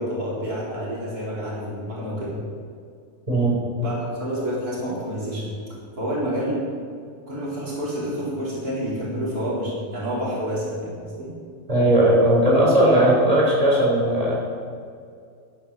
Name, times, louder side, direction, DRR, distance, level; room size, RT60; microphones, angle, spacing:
voice 1, 0.0-2.3 3.8-6.6 7.3-11.3, equal, 90° right, -6 dB, 4.7 m, -29 dB
voice 2, 11.7-14.3, right 1 dB, 25° right, -5 dB, 4.1 m, -17 dB
11.5 x 9.8 x 7.6 m, 2.2 s
omnidirectional pair, 1.6 m